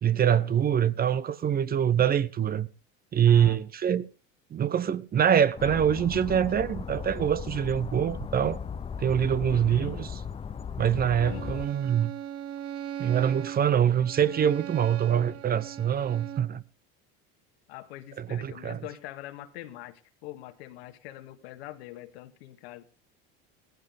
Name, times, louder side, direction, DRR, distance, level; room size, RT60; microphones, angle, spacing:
voice 1, 0.0-2.7 3.1-4.0 4.5-8.6 9.0-10.1 10.8-12.1 13.0-16.6 18.2-18.8, right 9 dB, 30° right, 0.8 m, -24 dB
voice 2, 3.3-3.6 9.5-10.0 11.2-11.5 17.7-22.8, left 15 dB, 85° left, 1.9 m, -43 dB
sound 1, 5.6-11.7, left 6 dB, 20° left, 0.6 m, -37 dB
Bowed string instrument, 11.1-16.6, right 10 dB, 50° right, 1.1 m, -39 dB
16.5 x 15.0 x 3.6 m
supercardioid pair, 110°, 31 cm